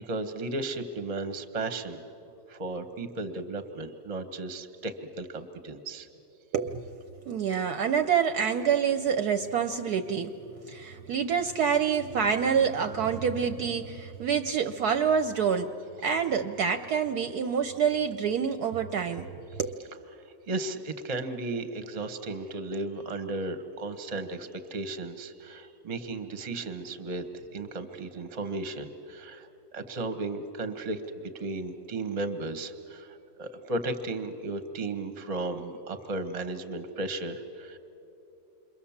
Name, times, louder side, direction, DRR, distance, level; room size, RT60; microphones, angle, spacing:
voice 1, 0.0-2.0 2.5-6.1 20.1-37.8, right 2 dB, 25° right, 10 dB, 0.8 m, -35 dB
voice 2, 6.5-6.9 7.3-10.4 10.7-15.7 16.0-19.3 19.6-19.8, right 7 dB, 65° right, 8 dB, 1.1 m, -27 dB
28.0 x 22.5 x 7.2 m, 3.0 s
omnidirectional pair, 2.0 m